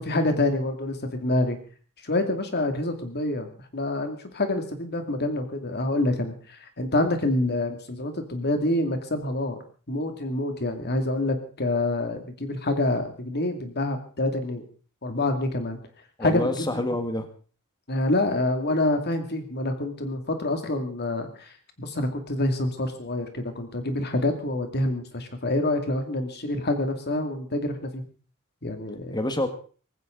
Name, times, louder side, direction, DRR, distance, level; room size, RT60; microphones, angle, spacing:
voice 1, 0.0-1.6 2.0-9.6 9.9-14.6 15.0-15.8 16.2-16.8 17.9-21.5 21.8-28.0 28.6-29.2, left 2 dB, 50° left, 6 dB, 2.5 m, -27 dB
voice 2, 16.2-17.3 29.1-29.5, left 1 dB, 20° left, 7 dB, 1.7 m, -27 dB
18.5 x 16.0 x 3.9 m, 0.40 s
head